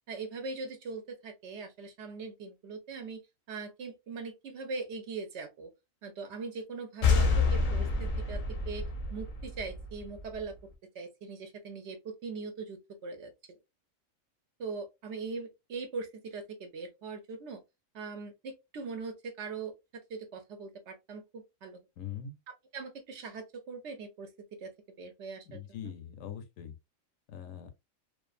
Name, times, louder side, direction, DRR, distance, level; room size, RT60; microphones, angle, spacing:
voice 1, 0.1-3.2 3.5-5.7 6.0-8.4 8.7-8.8 9.1-10.5 10.9-13.6 14.6-17.6 17.9-21.2 21.6-21.8 22.7-24.3 24.6-24.7 25.0-25.9, right 4 dB, 65° right, 0.8 m, -41 dB
sound 1, 7.0-10.5, left 4 dB, 50° left, 0.6 m, -28 dB
voice 2, 22.0-22.4 25.5-26.7 27.3-27.7, left 9 dB, 80° left, 1.0 m, -42 dB
2.5 x 2.4 x 2.3 m
omnidirectional pair, 1.4 m